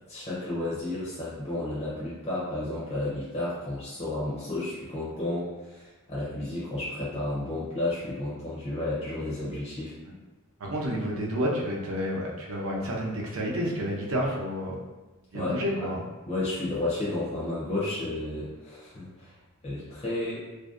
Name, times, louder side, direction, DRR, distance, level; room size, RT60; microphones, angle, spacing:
voice 1, 0.1-9.9 15.3-15.9 16.2-19.3 19.6-20.4, left 2 dB, 30° left, -9 dB, 0.5 m, -32 dB
voice 2, 10.6-14.8 15.3-16.0, equal, 65° right, -2 dB, 0.5 m, -30 dB
2.5 x 2.1 x 2.4 m, 1.2 s
head